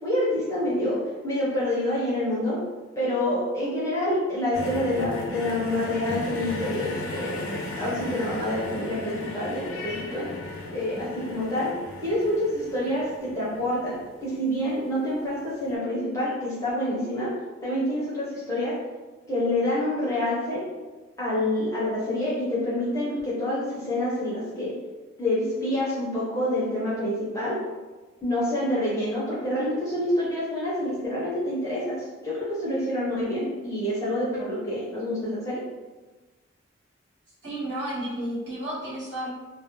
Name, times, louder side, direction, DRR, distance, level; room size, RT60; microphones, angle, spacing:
voice 1, 0.0-2.6 3.0-7.4 7.7-10.3 10.7-11.7 12.0-17.3 17.6-18.8 19.3-20.6 21.2-24.8 25.2-27.6 28.2-35.6, left 1 dB, 15° left, -8 dB, 0.6 m, -27 dB
sound 1, 4.5-14.7 15.6-15.7, left 2 dB, 85° left, 0.5 m, -36 dB
voice 2, 37.4-39.3, right 1 dB, 55° right, -10 dB, 1.1 m, -32 dB
2.3 x 2.0 x 2.9 m, 1.2 s
head